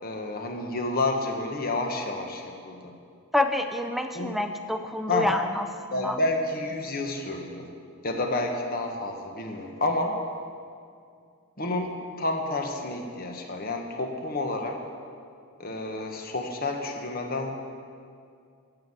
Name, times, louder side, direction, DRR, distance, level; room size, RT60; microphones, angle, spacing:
voice 1, 0.0-2.9 4.1-4.3 5.1-5.3 5.9-7.7 8.0-10.2 11.6-14.8 15.6-17.5, left 2 dB, 40° left, 3 dB, 1.3 m, -30 dB
voice 2, 3.3-5.7 6.0-6.2, left 1 dB, ahead, 6 dB, 0.5 m, -27 dB
15.5 x 8.0 x 7.4 m, 2.3 s
head